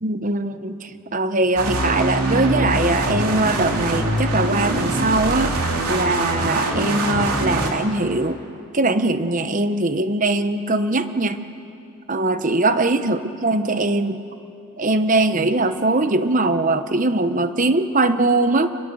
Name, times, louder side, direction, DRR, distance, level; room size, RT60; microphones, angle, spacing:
voice 1, 0.0-5.6 5.9-8.4 8.7-11.4 12.1-14.2 14.8-18.7, right 2 dB, 35° right, 10 dB, 0.9 m, -21 dB
sound 1, 1.6-7.7, right 1 dB, 90° right, 2.9 m, -23 dB
26.0 x 21.5 x 7.8 m, 2.7 s
head